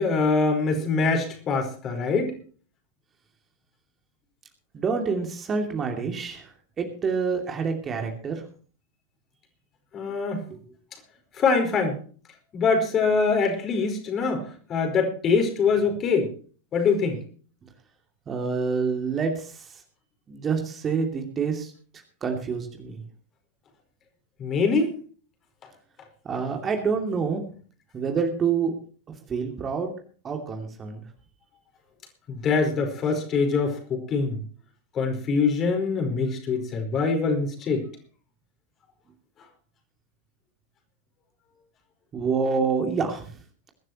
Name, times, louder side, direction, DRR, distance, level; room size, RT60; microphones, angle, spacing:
voice 1, 0.0-2.3 9.9-10.4 11.4-12.0 12.5-14.4 14.7-16.3 16.7-17.2 24.4-24.9 32.3-34.4 34.9-37.8, left 4 dB, 30° left, 5 dB, 4.7 m, -23 dB
voice 2, 4.7-6.5 6.8-8.4 10.5-10.6 18.3-19.5 20.3-21.7 22.2-23.0 26.2-27.4 27.9-28.7 29.3-29.9 30.2-31.0 42.1-43.3, right 5 dB, 25° right, 4 dB, 2.6 m, -27 dB
22.0 x 12.5 x 3.0 m, 0.41 s
figure-of-eight pair, 90°, 0 cm